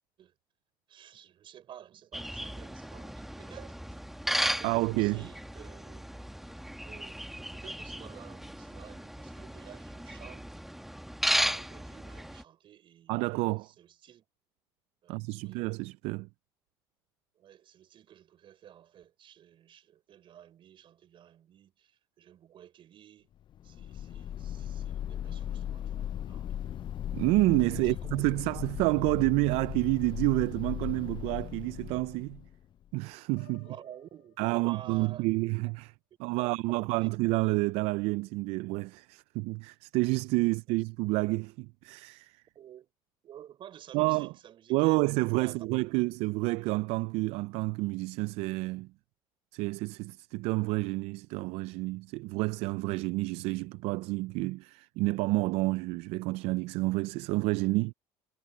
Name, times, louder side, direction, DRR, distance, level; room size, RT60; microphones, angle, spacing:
voice 1, 0.9-4.2 4.5-6.1 6.8-10.5 11.3-14.2 15.0-15.6 17.4-23.3 23.6-26.9 27.8-28.2 33.6-35.3 36.4-37.1 40.4-40.5 42.6-42.9 43.2-45.0 45.4-45.7 46.0-46.1, right 10 dB, 55° right, 5.4 m, -52 dB
sound 1, 2.1-12.4, equal, ahead, 1.5 m, -35 dB
voice 2, 4.6-5.2 13.1-13.7 15.1-16.3 27.1-32.4 32.9-33.7 34.4-35.9 36.2-42.4 43.9-44.3 44.7-48.9 49.5-57.9, right 23 dB, 75° right, 0.4 m, -29 dB
sound 2, 23.5-32.8, left 10 dB, 50° left, 0.6 m, -38 dB
Piano, 33.4-35.3, left 33 dB, 85° left, 6.7 m, -60 dB
supercardioid pair, 85°, 11 cm